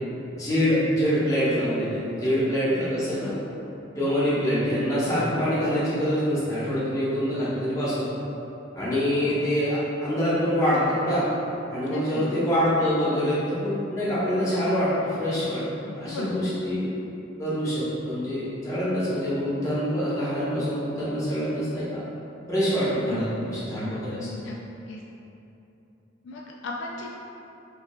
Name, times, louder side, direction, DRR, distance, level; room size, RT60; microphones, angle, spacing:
voice 1, 0.4-3.3 4.0-8.0 8.7-11.2 11.7-15.6 15.9-16.9 17.4-22.0 22.5-24.3, equal, 15° left, -11 dB, 1.1 m, -25 dB
voice 2, 11.9-12.3 15.8-16.4 22.9-23.5 24.2-24.6 24.9-25.0 26.2-27.2, left 2 dB, 70° left, -1 dB, 0.3 m, -36 dB
5.2 x 2.5 x 2.2 m, 2.9 s
head